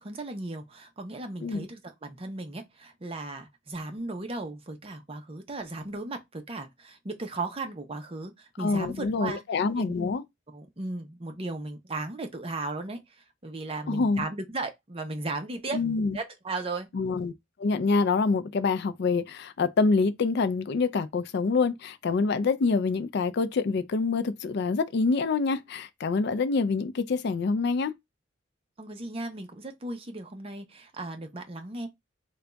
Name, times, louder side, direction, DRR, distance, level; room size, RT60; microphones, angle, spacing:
voice 1, 0.0-9.4 9.8-9.9 10.5-15.8 16.1-16.9 28.8-31.9, right 2 dB, 30° right, 0.6 m, -36 dB
voice 2, 8.6-10.2 13.9-14.2 15.7-16.2 16.9-17.3 17.6-27.9, left 4 dB, 55° left, 0.4 m, -26 dB
3.4 x 2.3 x 3.9 m
head